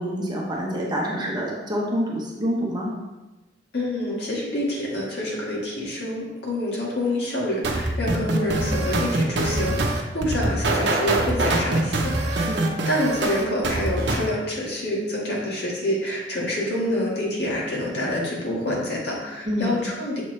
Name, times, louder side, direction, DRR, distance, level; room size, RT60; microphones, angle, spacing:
voice 1, 0.0-2.9 12.3-12.7 19.4-19.8, equal, 25° right, -3 dB, 1.1 m, -27 dB
voice 2, 3.7-12.5 12.9-20.2, left 1 dB, 65° left, -4 dB, 1.8 m, -27 dB
sound 1, 7.6-14.3, right 2 dB, 75° right, 0.8 m, -24 dB
7.1 x 4.4 x 3.2 m, 1.1 s
head